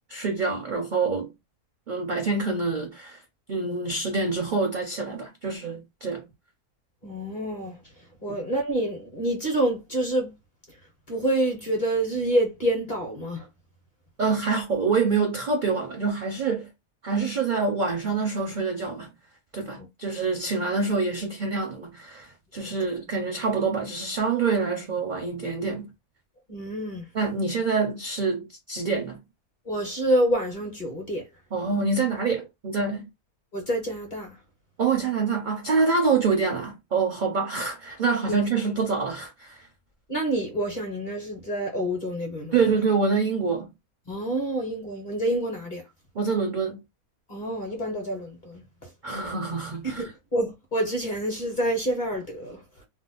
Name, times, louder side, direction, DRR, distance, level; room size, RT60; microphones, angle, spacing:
voice 1, 0.1-1.3 1.9-3.2 3.5-6.2 8.3-8.4 14.2-16.7 17.0-19.1 19.5-25.9 27.1-29.2 31.5-33.1 34.8-39.6 42.5-43.7 46.2-46.8 49.0-50.1, right 4 dB, 55° right, 0.5 m, -26 dB
voice 2, 7.0-7.7 8.2-10.3 11.1-13.5 19.8-19.9 22.6-22.7 26.5-27.0 29.7-31.2 33.5-34.3 38.3-38.4 40.1-42.5 44.1-45.8 47.3-48.6 49.8-52.6, right 1 dB, 40° left, 0.8 m, -27 dB
2.7 x 2.0 x 3.8 m
omnidirectional pair, 1.6 m